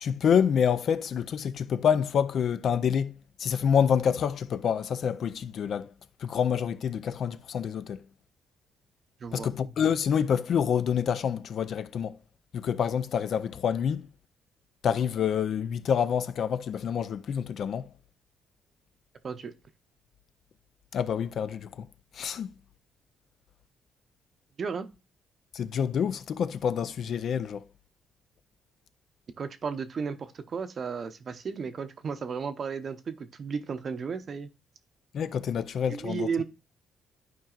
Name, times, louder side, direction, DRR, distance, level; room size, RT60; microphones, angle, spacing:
voice 1, 0.0-5.9 6.2-8.1 9.3-12.2 12.5-14.1 14.8-17.9 20.9-21.9 22.1-22.5 25.5-27.6 35.1-36.3, left 7 dB, 60° left, 0.4 m, -27 dB
voice 2, 24.6-24.9 29.4-34.5 35.9-36.4, right 5 dB, 50° right, 0.6 m, -34 dB
11.5 x 4.6 x 2.4 m
cardioid pair, 90°, 0 cm